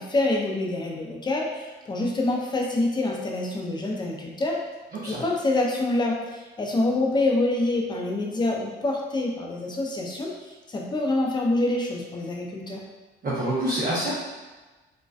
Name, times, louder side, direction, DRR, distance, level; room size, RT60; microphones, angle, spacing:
voice 1, 0.0-4.6 5.1-12.8, left 2 dB, 20° left, -1 dB, 0.5 m, -26 dB
voice 2, 13.2-14.1, right 1 dB, 45° right, -8 dB, 0.7 m, -26 dB
2.5 x 2.1 x 2.3 m, 1.2 s
cardioid pair, 90°, 20 cm